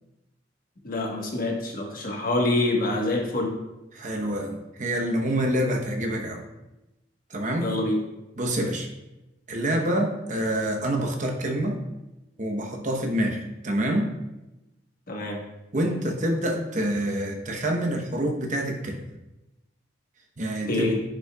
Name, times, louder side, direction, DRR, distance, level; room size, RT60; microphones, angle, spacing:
voice 1, 0.8-3.6 7.6-8.0 15.1-15.4 20.7-21.0, left 2 dB, 50° left, 0 dB, 1.3 m, -26 dB
voice 2, 3.9-6.4 7.3-7.7 8.4-8.9 9.5-11.8 12.4-14.1 15.7-19.0 20.4-20.8, right 1 dB, 45° right, 2 dB, 0.9 m, -27 dB
10.5 x 5.4 x 2.3 m, 0.98 s
head